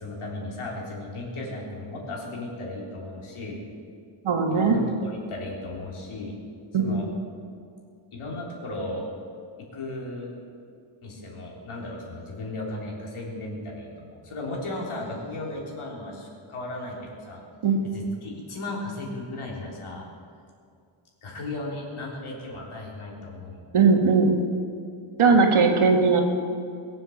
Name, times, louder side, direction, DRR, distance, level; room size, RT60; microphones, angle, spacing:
voice 1, 0.0-3.6 4.5-6.4 6.8-7.1 8.1-9.1 9.6-10.3 11.0-17.4 17.9-20.1 21.2-24.2, left 2 dB, 75° left, -2 dB, 3.7 m, -36 dB
voice 2, 4.2-4.8 6.7-7.0 17.6-17.8 23.7-24.3 25.2-26.2, right 4 dB, 75° right, 3 dB, 2.1 m, -19 dB
22.0 x 7.7 x 7.2 m, 2.3 s
wide cardioid pair, 170°, 50 cm